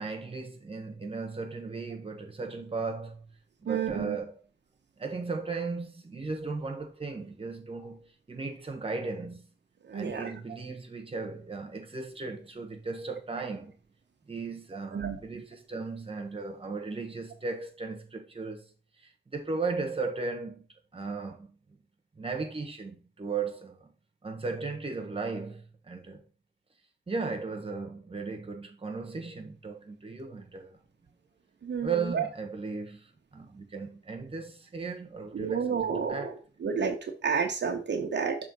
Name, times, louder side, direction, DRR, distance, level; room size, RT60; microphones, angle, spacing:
voice 1, 0.0-3.3 3.6-4.4 5.0-9.5 9.9-13.7 14.3-18.7 19.3-20.6 20.9-21.5 22.2-23.9 24.2-26.2 27.1-30.8 31.8-33.0 33.3-36.3, right 4 dB, 30° right, 1.4 m, -36 dB
voice 2, 3.7-4.2 9.9-10.3 14.9-15.2 31.6-32.2 35.3-36.3 36.6-37.0 37.2-38.4, right 6 dB, 65° right, 1.0 m, -30 dB
6.5 x 3.5 x 5.4 m
wide cardioid pair, 115°, 19 cm